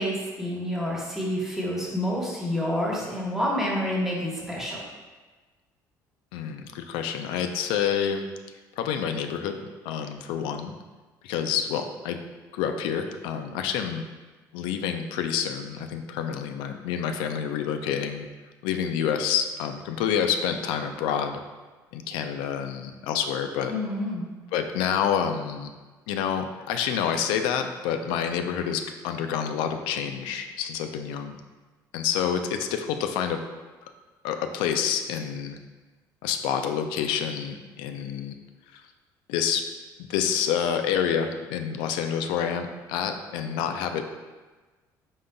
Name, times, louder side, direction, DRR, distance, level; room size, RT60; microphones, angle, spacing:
voice 1, 0.0-4.8 23.7-24.2, left 1 dB, 5° right, -4 dB, 1.2 m, -28 dB
voice 2, 6.3-8.3 8.8-9.6 9.8-10.7 11.2-12.2 12.5-14.0 14.5-18.3 18.6-21.4 21.9-23.7 24.5-25.7 26.1-31.4 31.9-33.4 33.8-33.9 34.2-35.6 36.2-38.4 38.7-38.8 39.3-39.7 40.1-44.0, left 8 dB, 90° left, 6 dB, 0.4 m, -28 dB
5.1 x 3.7 x 2.3 m, 1.3 s
cardioid pair, 100°, 8 cm